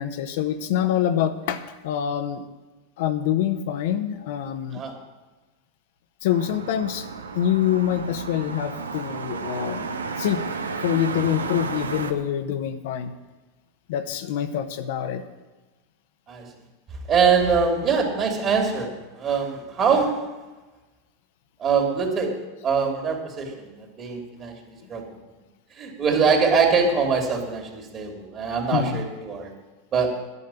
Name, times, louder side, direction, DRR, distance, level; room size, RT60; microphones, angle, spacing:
voice 1, 0.0-2.4 3.0-4.8 6.2-7.1 7.3-9.9 10.2-10.6 10.8-13.1 13.9-15.2 28.7-29.0, left 10 dB, 65° left, 8 dB, 0.9 m, -25 dB
sound 1, 6.3-12.1, right 4 dB, 90° right, 0.8 m, -32 dB
voice 2, 17.1-18.9 19.2-20.2 21.6-22.3 22.6-25.0 25.8-29.5 29.9-30.1, right 5 dB, 35° right, 2 dB, 3.0 m, -23 dB
11.0 x 6.5 x 8.9 m, 1.2 s
hypercardioid pair, 95°, 0 cm